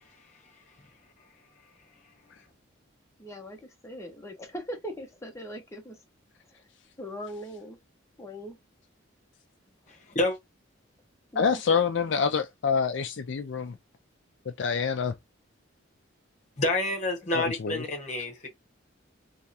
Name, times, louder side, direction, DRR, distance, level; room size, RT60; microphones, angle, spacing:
voice 1, 3.2-6.0 7.0-7.8 8.2-8.6 11.3-11.6, equal, 15° left, 0.8 m, -40 dB
voice 2, 11.4-13.8 14.6-15.1 17.3-17.8, left 6 dB, 60° left, 0.4 m, -26 dB
voice 3, 16.6-18.5, left 2 dB, 35° left, 1.2 m, -28 dB
3.5 x 3.1 x 2.8 m
head